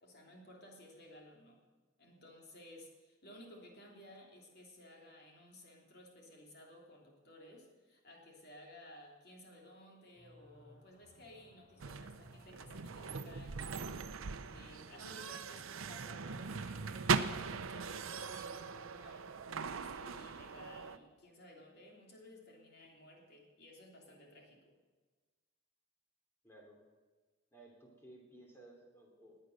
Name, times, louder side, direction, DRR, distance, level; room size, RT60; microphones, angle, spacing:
voice 1, 0.0-1.6 2.0-24.7, left 1 dB, 50° left, 0 dB, 3.2 m, -57 dB
sound 1, 10.1-17.2, equal, 30° left, 5.4 m, -62 dB
sound 2, 11.8-21.0, right 5 dB, 80° right, 0.7 m, -40 dB
voice 2, 26.4-26.8 27.5-29.4, right 1 dB, 10° left, 0 dB, 3.1 m, -58 dB
20.0 x 8.9 x 6.6 m, 1.3 s
head